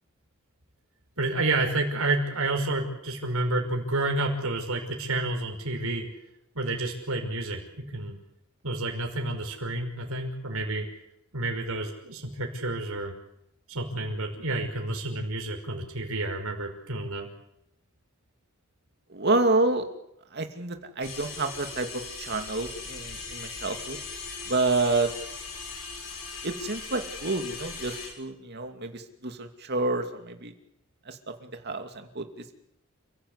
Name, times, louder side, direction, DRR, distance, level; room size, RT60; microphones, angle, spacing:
voice 1, 1.2-6.1 6.5-8.2 8.6-10.9 11.3-13.1 13.7-17.3, right 2 dB, 85° right, 2 dB, 5.8 m, -30 dB
voice 2, 19.1-19.8 20.3-24.0 24.5-25.1 26.4-30.5 31.1-32.5, right 2 dB, 50° right, 6 dB, 2.6 m, -29 dB
sound 1, 21.0-28.1, left 4 dB, 75° left, 6.6 m, -39 dB
29.5 x 16.0 x 8.3 m, 0.80 s
head